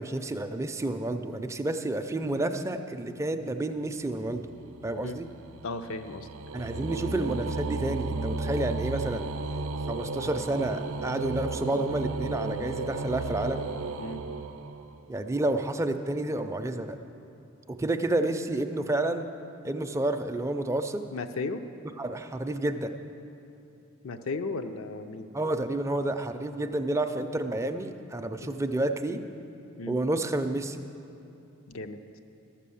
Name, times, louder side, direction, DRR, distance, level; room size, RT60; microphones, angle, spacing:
voice 1, 0.0-4.4 4.8-5.3 6.5-9.3 9.9-13.7 15.1-17.0 17.7-19.3 19.6-21.0 22.0-22.9 25.3-29.2 29.9-30.8, right 2 dB, 15° right, 7 dB, 0.4 m, -30 dB
sound 1, 4.3-15.2, right 3 dB, 70° right, 0.5 m, -34 dB
voice 2, 5.6-6.3 14.0-14.2 21.1-21.6 24.0-25.3 28.4-28.6 29.8-30.0 31.7-32.0, left 3 dB, 75° left, 8 dB, 0.5 m, -35 dB
12.5 x 7.4 x 7.0 m, 2.8 s
head